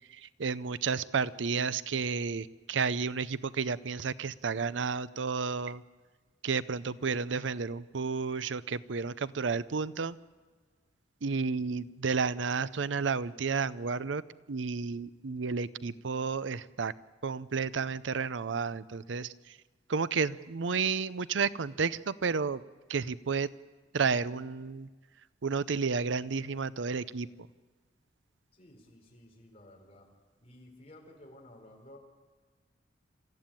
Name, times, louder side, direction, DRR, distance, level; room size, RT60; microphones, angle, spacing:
voice 1, 0.4-5.8 6.4-10.2 11.2-14.2 14.5-16.9 17.2-19.3 19.9-22.6 22.9-23.5 23.9-24.9 25.4-27.3, right 5 dB, 90° right, 17 dB, 0.6 m, -31 dB
voice 2, 28.5-30.1 30.4-32.0, left 1 dB, 35° left, 0 dB, 4.7 m, -54 dB
27.5 x 14.0 x 9.1 m, 1.4 s
head